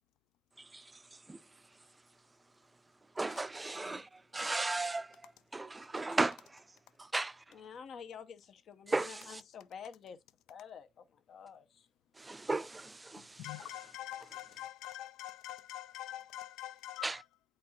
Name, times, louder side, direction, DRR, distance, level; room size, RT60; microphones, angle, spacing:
voice 1, 0.6-0.9 1.3-1.4 3.2-6.6 7.0-7.4 8.9-9.4 12.2-13.5 17.0-17.2, right 2 dB, 20° right, 0.4 m, -36 dB
voice 2, 3.7-4.1 7.5-10.2 10.5-11.9, left 7 dB, 65° left, 0.7 m, -49 dB
voice 3, 13.2-17.2, left 13 dB, 90° left, 0.3 m, -45 dB
8.7 x 4.1 x 2.7 m
cardioid pair, 90°, 0 cm